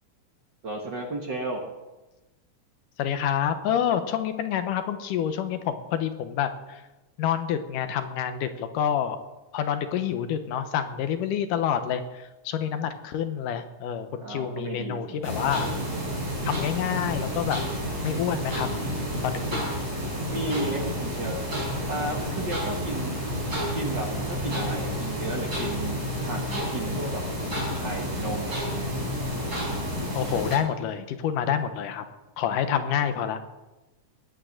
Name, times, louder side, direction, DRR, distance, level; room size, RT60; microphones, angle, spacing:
voice 1, 0.6-1.6 14.2-15.2 20.3-21.4 21.9-23.2 23.7-26.0 26.2-27.2 27.7-28.9 32.7-32.8, right 2 dB, 45° right, 1 dB, 1.5 m, -33 dB
voice 2, 3.0-6.8 7.2-9.2 9.5-15.7 16.5-17.6 18.0-18.7 19.2-19.6 30.1-32.1 32.4-33.5, left 9 dB, 80° left, 9 dB, 2.6 m, -28 dB
sound 1, 15.2-30.6, equal, 30° right, 4.8 m, -30 dB
19.5 x 8.8 x 6.5 m, 1.1 s
omnidirectional pair, 3.7 m